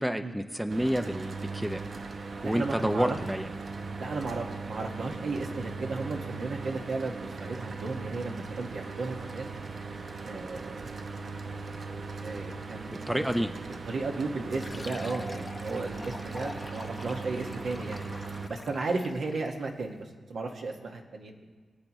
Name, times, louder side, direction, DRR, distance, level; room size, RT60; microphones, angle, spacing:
voice 1, 0.0-1.8 2.4-3.5 13.1-13.5, equal, 5° right, 8 dB, 0.6 m, -29 dB
Mechanical fan, 0.7-18.5, right 4 dB, 60° right, 0.8 m, -39 dB
voice 2, 2.4-3.2 4.0-9.5 10.2-11.1 12.2-13.3 13.8-18.1 18.5-21.4, right 3 dB, 75° right, 1 dB, 1.5 m, -34 dB
Fill (with liquid), 14.5-19.6, left 2 dB, 30° left, 0.8 m, -45 dB
20.5 x 8.4 x 3.1 m, 1.5 s
cardioid pair, 70°, 0 cm